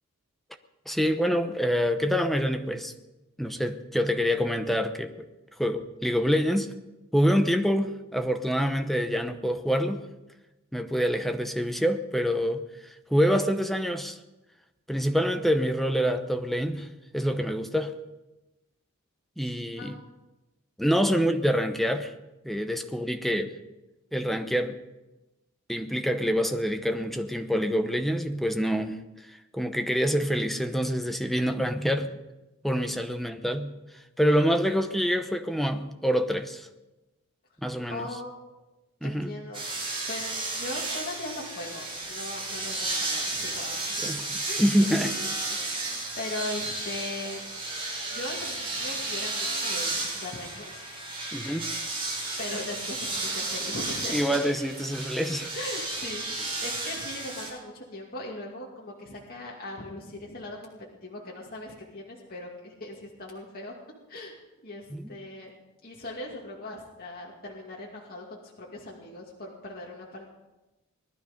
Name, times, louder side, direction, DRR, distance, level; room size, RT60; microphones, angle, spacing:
voice 1, 0.9-2.9 3.4-5.3 5.6-6.7 7.1-10.0 10.7-14.2 14.9-16.9 17.1-17.9 19.4-19.9 20.8-22.1 22.4-23.5 24.1-24.8 25.7-29.0 29.2-32.1 32.6-33.7 34.2-36.7 37.6-38.1 39.0-39.3 43.9-44.2 44.6-45.1 51.3-51.7 54.1-55.5 64.9-65.1, equal, ahead, 6 dB, 0.8 m, -26 dB
voice 2, 37.9-38.5 39.0-44.1 44.4-45.6 45.8-47.4 48.1-50.8 52.4-54.4 55.5-60.7 61.0-63.7 64.1-65.5 65.8-70.3, left 2 dB, 45° left, -3 dB, 2.3 m, -39 dB
sound 1, 39.5-57.5, right 2 dB, 25° right, 4.9 m, -33 dB
19.5 x 12.0 x 5.3 m, 1.0 s
head